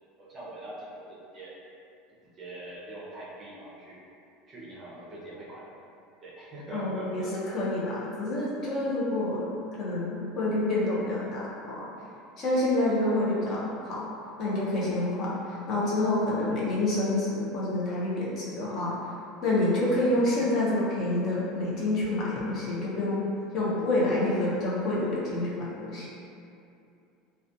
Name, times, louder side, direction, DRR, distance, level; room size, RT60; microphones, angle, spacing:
voice 1, 0.2-1.1 1.3-1.5 2.4-4.0 4.5-5.7 6.2-7.3, right 1 dB, 25° right, -7 dB, 0.5 m, -42 dB
voice 2, 6.7-9.4 9.8-11.9 12.4-14.0 14.4-19.0 19.4-23.3 23.5-26.1, left 1 dB, 35° left, -7 dB, 0.4 m, -28 dB
2.3 x 2.1 x 2.5 m, 2.6 s
cardioid pair, 165°, 0 cm